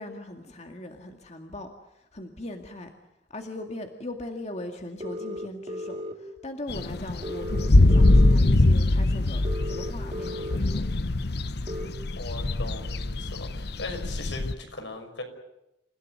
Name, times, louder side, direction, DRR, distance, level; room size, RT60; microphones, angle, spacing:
voice 1, 0.0-2.9 3.3-10.8, left 1 dB, 40° left, 4 dB, 2.1 m, -40 dB
sound 1, 5.0-6.1 7.2-8.4 9.4-10.6 11.7-11.9, left 1 dB, 35° right, 2.9 m, -35 dB
sound 2, 6.7-14.5, left 2 dB, 60° left, 0.9 m, -22 dB
voice 2, 12.2-15.2, left 3 dB, 80° left, 5 dB, 6.0 m, -39 dB
29.0 x 16.5 x 9.6 m, 0.89 s
head